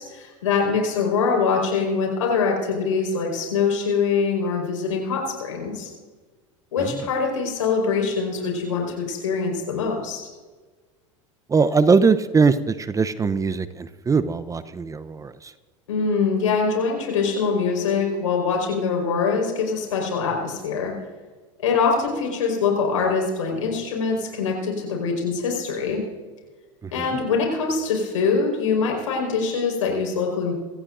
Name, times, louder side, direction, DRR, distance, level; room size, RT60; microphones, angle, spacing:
voice 1, 0.0-5.9 6.7-10.2 15.9-20.9 21.6-26.0 26.9-30.5, left 5 dB, 80° left, 0 dB, 4.8 m, -23 dB
voice 2, 11.5-15.5 26.8-27.1, right 5 dB, 20° right, 13 dB, 0.7 m, -21 dB
25.0 x 15.0 x 2.6 m, 1.4 s
hypercardioid pair, 80°, 17 cm